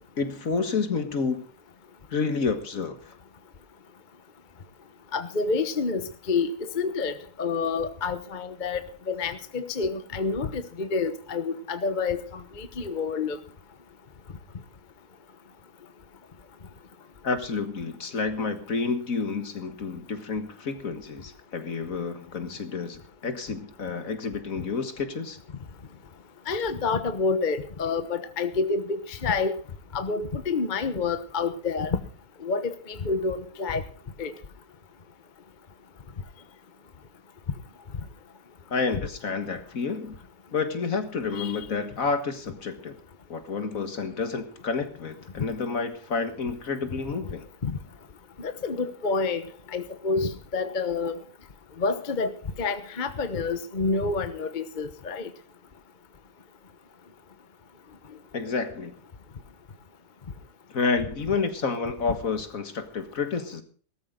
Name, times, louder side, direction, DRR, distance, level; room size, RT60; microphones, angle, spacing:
voice 1, 0.2-1.4 2.1-3.2 17.2-25.4 38.7-40.2 40.5-43.0 43.3-47.5 58.3-58.9 60.7-63.6, left 4 dB, 60° left, 8 dB, 2.0 m, -29 dB
voice 2, 5.1-13.4 26.5-29.6 29.9-32.0 32.4-33.8 34.2-34.3 41.4-41.6 45.4-45.5 47.6-47.8 48.4-51.2 51.8-55.3, left 4 dB, 35° left, 10 dB, 1.1 m, -28 dB
17.5 x 13.5 x 3.8 m, 0.41 s
omnidirectional pair, 1.6 m